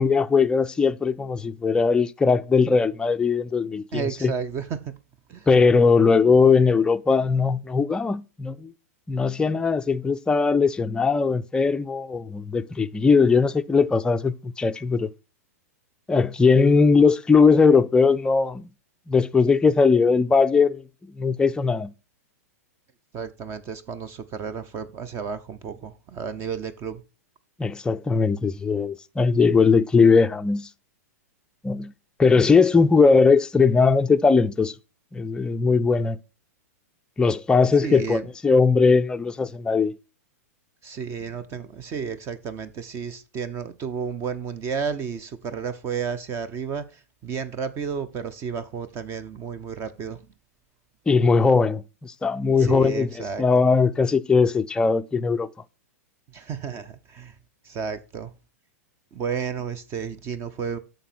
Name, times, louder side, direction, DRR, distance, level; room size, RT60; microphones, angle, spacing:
voice 1, 0.0-4.3 5.5-8.7 9.1-15.1 16.1-18.7 19.1-21.9 27.6-30.7 31.6-31.9 32.2-34.7 35.1-36.2 37.2-39.9 51.1-55.5, left 4 dB, 10° left, 0.4 m, -19 dB
voice 2, 3.9-4.9 5.3-5.5 23.1-27.0 37.8-38.3 40.8-46.8 47.2-50.2 52.6-53.4 56.3-57.3 57.7-58.3 59.1-60.8, right 6 dB, 30° right, 0.7 m, -32 dB
8.8 x 6.5 x 4.4 m
hypercardioid pair, 105°, 8 cm